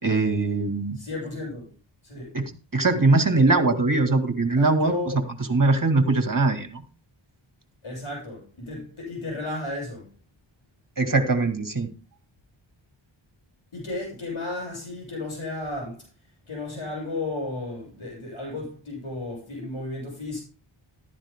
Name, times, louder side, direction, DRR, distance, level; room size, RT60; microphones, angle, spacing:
voice 1, 0.0-1.0 2.3-2.4 2.7-4.9 5.5-6.8 11.0-11.9, right 3 dB, 40° right, 2.1 m, -21 dB
voice 2, 1.0-1.7 2.0-2.4 2.9-3.0 4.6-5.3 7.8-10.1 13.7-16.1 16.5-20.4, left 2 dB, 80° left, 7.8 m, -33 dB
14.5 x 12.0 x 2.2 m
wide cardioid pair, 50°, 49 cm